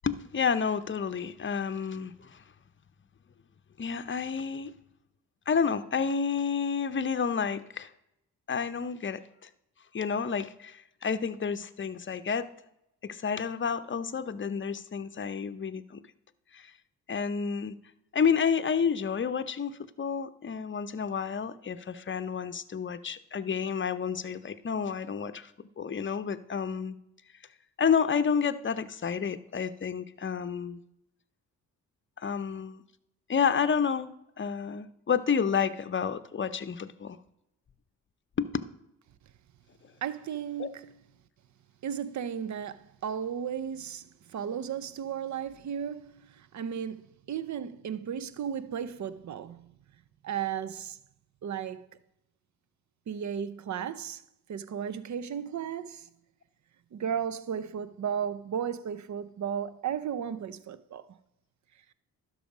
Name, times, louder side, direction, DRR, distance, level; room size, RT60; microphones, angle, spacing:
voice 1, 0.0-2.4 3.8-4.8 5.5-7.9 8.5-9.5 9.9-12.5 13.0-16.0 16.5-16.7 17.1-17.7 18.1-25.5 25.8-26.9 27.8-30.8 32.2-32.8 33.3-37.2 38.4-38.5 40.6-40.7, left 6 dB, 30° left, 0.7 m, -30 dB
voice 2, 40.0-40.9 41.8-49.7 50.2-51.0 51.4-51.9 53.1-54.2 54.5-56.1 56.9-61.1, right 8 dB, 50° right, 0.7 m, -35 dB
12.0 x 4.9 x 5.0 m
hypercardioid pair, 45°, 38 cm